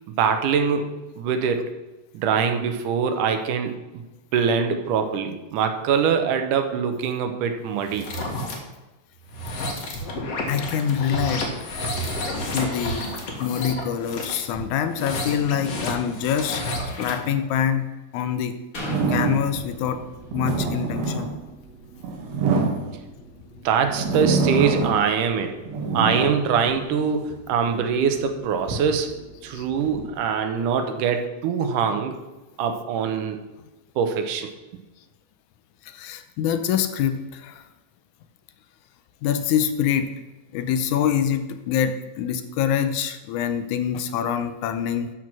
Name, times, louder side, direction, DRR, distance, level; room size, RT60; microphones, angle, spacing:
voice 1, 0.1-1.7 2.1-4.0 4.3-8.1 22.5-22.6 23.6-25.5 25.9-29.1 29.4-32.2 32.6-33.4 34.0-34.5, right 6 dB, 80° right, 6 dB, 2.5 m, -23 dB
sound 1, 7.8-8.6 9.2-17.3, left 1 dB, 55° left, 2.5 m, -31 dB
voice 2, 10.5-11.5 12.5-13.1 13.4-16.6 17.0-18.6 19.1-20.0 20.3-21.3 29.6-29.7 35.8-37.6 39.2-40.1 40.5-45.1, left 8 dB, 80° left, 9 dB, 2.0 m, -25 dB
sound 2, 18.7-22.5 23.0-23.1, left 2 dB, 30° left, 2.0 m, -38 dB
sound 3, 18.8-19.6 20.1-23.3 23.8-25.2 25.5-27.4 28.0-30.1, right 4 dB, 60° right, 2.3 m, -26 dB
12.5 x 4.8 x 6.0 m, 1.1 s
omnidirectional pair, 3.6 m